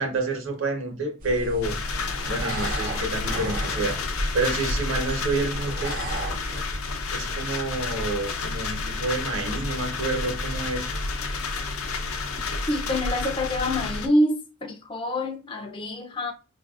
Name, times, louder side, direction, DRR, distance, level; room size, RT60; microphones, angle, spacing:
voice 1, 0.0-1.8 2.3-4.0 4.3-5.9 7.1-10.9, right 2 dB, 65° right, 1.0 m, -28 dB
sound 1, 1.2-6.6, right 1 dB, 40° right, 0.5 m, -34 dB
sound 2, 1.6-14.1, left 3 dB, 85° left, 0.6 m, -30 dB
voice 2, 12.7-16.3, left 1 dB, 25° left, 0.4 m, -26 dB
4.6 x 2.5 x 2.4 m
head